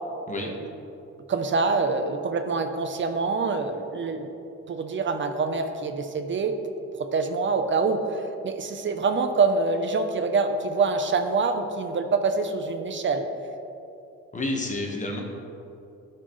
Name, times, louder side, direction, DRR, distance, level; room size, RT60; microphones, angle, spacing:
voice 1, 1.3-4.3 4.7-6.6 7.0-13.3, right 4 dB, 40° right, 7 dB, 0.7 m, -25 dB
voice 2, 14.3-15.2, left 2 dB, 25° left, 0 dB, 1.3 m, -29 dB
12.5 x 4.4 x 3.1 m, 2.8 s
cardioid pair, 90°, 30 cm